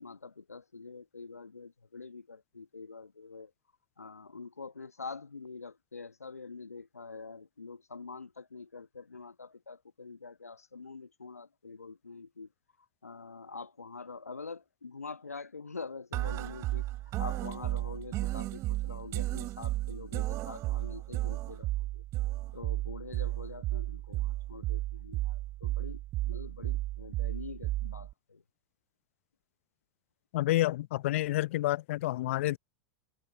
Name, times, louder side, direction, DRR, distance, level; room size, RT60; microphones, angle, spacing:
voice 1, 0.0-3.5 4.0-12.5 13.0-16.9 17.2-22.0 22.5-28.4, left 4 dB, 85° left, 1.1 m, -45 dB
sound 1, 16.1-28.1, right 16 dB, 40° right, 0.9 m, -34 dB
voice 2, 30.3-32.6, left 16 dB, 60° left, 0.6 m, -29 dB
figure-of-eight pair, 90°, 8 cm